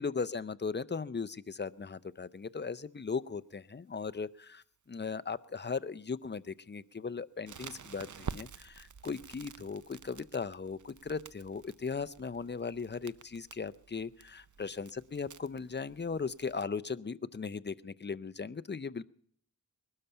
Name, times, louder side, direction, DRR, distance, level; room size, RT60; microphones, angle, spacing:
voice 1, 0.0-19.0, left 5 dB, 30° left, 15 dB, 0.5 m, -38 dB
Crackle, 7.5-16.6, right 6 dB, 50° right, 0.6 m, -49 dB
20.5 x 12.5 x 5.7 m, 0.64 s
wide cardioid pair, 60°, 38 cm